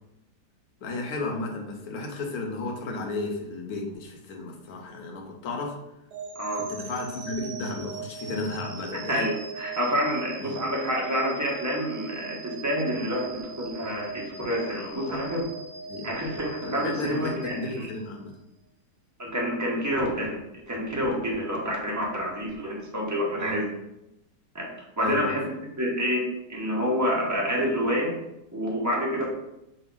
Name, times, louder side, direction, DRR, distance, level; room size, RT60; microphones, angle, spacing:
voice 1, 0.8-5.7 6.5-9.3 10.4-10.6 15.9-16.1 16.6-18.4 23.4-23.6 25.0-25.3, left 3 dB, 70° left, 1 dB, 1.2 m, -33 dB
sound 1, 6.1-18.2, right 5 dB, 85° right, 1.4 m, -40 dB
voice 2, 8.9-15.5 16.0-17.9 19.2-20.4 20.7-23.7 24.5-24.7 25.0-26.2 26.5-28.1 28.5-29.3, equal, 15° right, -3 dB, 0.6 m, -28 dB
5.5 x 2.4 x 3.8 m, 0.87 s
omnidirectional pair, 1.8 m